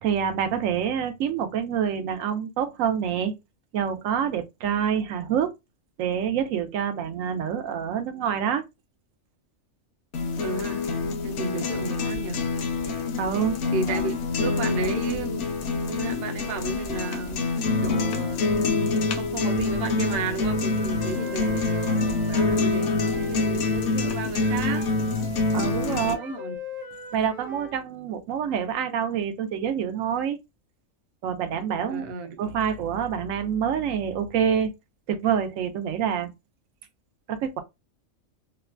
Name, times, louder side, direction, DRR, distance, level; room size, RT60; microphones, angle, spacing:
voice 1, 0.0-3.3 3.7-5.5 6.0-8.6 13.2-13.6 13.9-14.0 25.5-26.3 27.1-30.4 31.2-32.0 32.4-34.7 35.1-36.3 37.3-37.6, right 8 dB, 90° right, 1.0 m, -26 dB
sound 1, 10.1-26.1, left 3 dB, 70° left, 0.9 m, -26 dB
voice 2, 10.4-10.8 11.2-12.4 13.7-14.1 14.4-15.4 15.8-24.9 25.9-26.6 31.9-32.4, right 4 dB, 60° right, 0.7 m, -33 dB
Wind instrument woodwind instrument, 19.4-23.4 24.4-27.8, left 2 dB, 30° right, 0.4 m, -40 dB
3.1 x 2.1 x 2.3 m
omnidirectional pair, 1.3 m